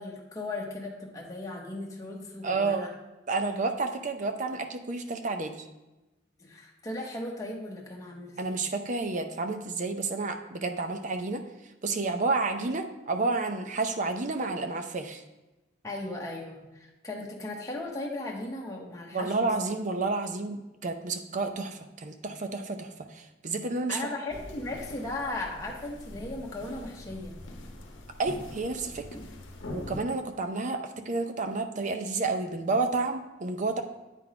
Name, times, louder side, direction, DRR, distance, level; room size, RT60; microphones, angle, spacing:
voice 1, 0.0-2.9 6.4-8.6 15.8-19.7 23.9-27.4, left 2 dB, 20° left, -2 dB, 1.0 m, -37 dB
voice 2, 2.4-2.9 3.3-5.6 8.4-11.4 11.8-15.2 19.1-24.0 28.2-29.1 29.7-33.8, right 3 dB, 40° right, 7 dB, 0.6 m, -30 dB
sound 1, 24.3-30.0, left 1 dB, 80° left, 0.8 m, -43 dB
9.1 x 3.9 x 4.8 m, 1.0 s
head